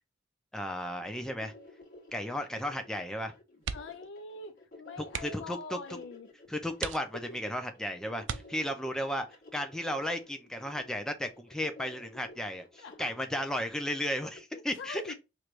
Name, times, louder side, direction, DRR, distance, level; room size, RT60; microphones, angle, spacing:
voice 1, 0.5-1.5 2.1-3.3 5.2-5.8 6.5-9.3 9.5-15.1, equal, 5° left, 0.5 m, -34 dB
sound 1, 0.7-14.4, left 2 dB, 50° left, 1.6 m, -54 dB
sound 2, 3.6-4.1 4.4-4.6 5.0-5.5 6.2-6.3 6.7-7.5 8.2-9.0 10.6-10.9 11.2-11.3, right 7 dB, 85° right, 0.5 m, -39 dB
voice 2, 3.7-6.3 7.1-7.2 12.8-13.1 14.5-15.1, left 4 dB, 80° left, 0.4 m, -44 dB
4.6 x 3.2 x 2.4 m
head